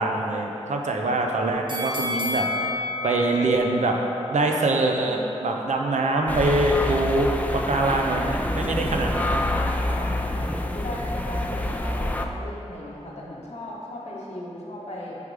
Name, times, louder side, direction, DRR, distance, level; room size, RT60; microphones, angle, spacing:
voice 1, 0.0-2.7 3.0-4.0 4.3-9.5, right 2 dB, 90° right, 1 dB, 0.5 m, -24 dB
sound 1, 1.7-4.8 5.2-5.3, left 2 dB, 40° right, 1.0 m, -31 dB
sound 2, 6.3-12.2, left 1 dB, 10° left, 0.4 m, -27 dB
voice 2, 8.5-8.9 9.3-15.1, left 1 dB, 75° left, -5 dB, 1.1 m, -37 dB
4.9 x 4.9 x 4.8 m, 3.0 s
cardioid pair, 50°, 12 cm